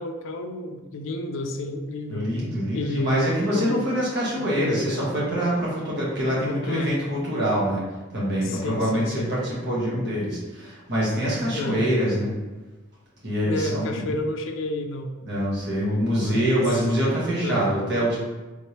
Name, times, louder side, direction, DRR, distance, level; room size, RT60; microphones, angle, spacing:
voice 1, 0.0-2.3 2.7-3.9 4.4-4.5 6.4-7.0 8.4-9.4 11.5-11.8 13.4-15.1 16.1-16.7 17.4-17.7, left 1 dB, 70° left, 6 dB, 0.4 m, -31 dB
voice 2, 2.1-7.8 8.1-12.3 13.2-14.0 15.2-18.2, equal, 50° right, -6 dB, 1.3 m, -25 dB
3.5 x 3.2 x 2.9 m, 1.2 s
head